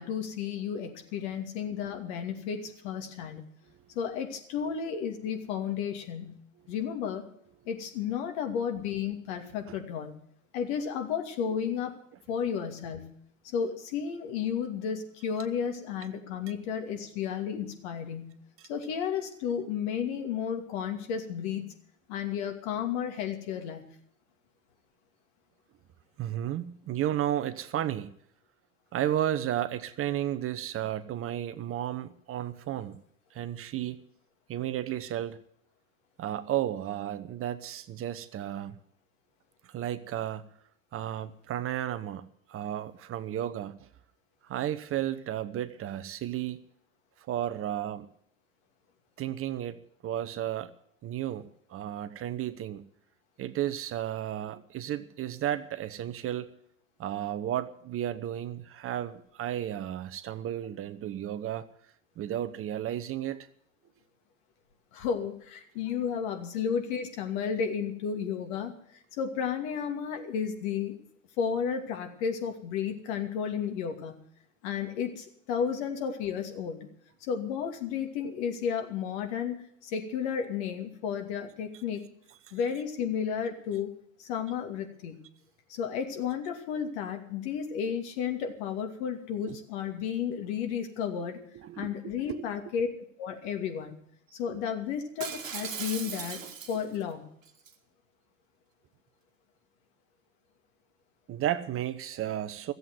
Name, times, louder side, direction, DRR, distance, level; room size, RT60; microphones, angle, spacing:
voice 1, 0.0-3.4 3.9-6.4 6.7-7.3 7.7-10.2 10.5-11.9 12.3-13.2 13.4-18.3 18.7-21.7 22.1-23.8 64.9-68.7 69.2-71.0 71.4-74.1 74.6-76.9 77.2-82.0 82.5-83.9 84.2-85.2 85.7-91.4 91.8-92.9 93.2-93.9 94.3-96.4 96.7-97.2, left 7 dB, 60° left, 4 dB, 2.6 m, -32 dB
voice 2, 26.2-28.1 28.9-33.0 33.3-34.0 34.5-35.4 36.2-38.8 39.7-40.5 40.9-42.2 42.5-43.9 44.4-46.6 47.3-48.1 49.2-50.7 51.0-52.8 53.4-56.5 57.0-61.6 62.2-63.5 89.5-89.6 91.5-92.5 101.3-102.7, right 11 dB, 35° right, 10 dB, 1.0 m, -33 dB
Shatter, 95.2-97.0 97.5-97.7, right 7 dB, 85° right, 1.4 m, -38 dB
14.5 x 8.0 x 9.5 m, 0.66 s
hypercardioid pair, 80°, 38 cm